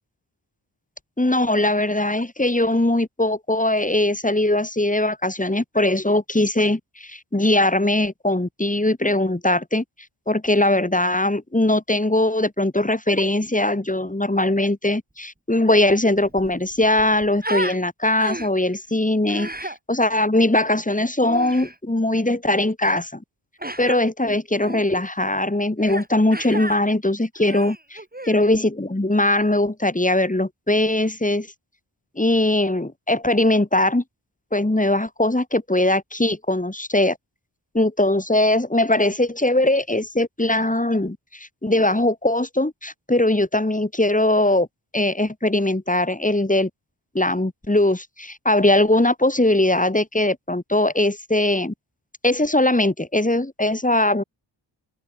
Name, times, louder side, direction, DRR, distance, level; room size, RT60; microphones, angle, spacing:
voice 1, 1.2-9.8 10.3-23.1 23.8-28.0 28.3-31.5 32.2-34.0 34.5-37.2 37.7-44.7 44.9-46.7 47.1-51.7 52.2-54.2, left 1 dB, 15° left, 3.2 m, -20 dB
Human voice, 15.8-15.9 16.2-17.8 18.2-18.7 19.3-19.8 21.2-21.7 23.6-24.0 24.6-24.8 25.8-26.1 26.3-26.8 27.3-28.4, right 1 dB, 20° right, 7.6 m, -32 dB
open air
wide cardioid pair, 60°, 48 cm